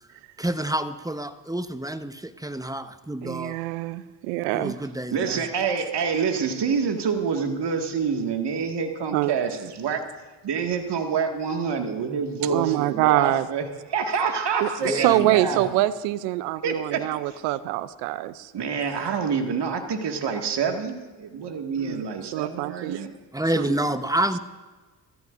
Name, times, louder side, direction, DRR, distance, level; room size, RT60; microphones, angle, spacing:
voice 1, 0.4-3.6 4.5-5.4 14.9-15.6 23.3-24.4, right 1 dB, 10° right, 10 dB, 1.0 m, -28 dB
voice 2, 3.2-4.7 9.1-9.3 12.5-13.5 14.6-18.5 21.8-22.0 22.3-23.0 23.6-23.9, right 16 dB, 90° right, 16 dB, 0.6 m, -25 dB
voice 3, 5.1-10.0 10.4-13.6 13.9-15.8 16.6-17.4 18.5-23.1, right 6 dB, 60° right, 4 dB, 2.0 m, -27 dB
24.0 x 14.5 x 2.6 m, 1.3 s
hypercardioid pair, 50°, 47 cm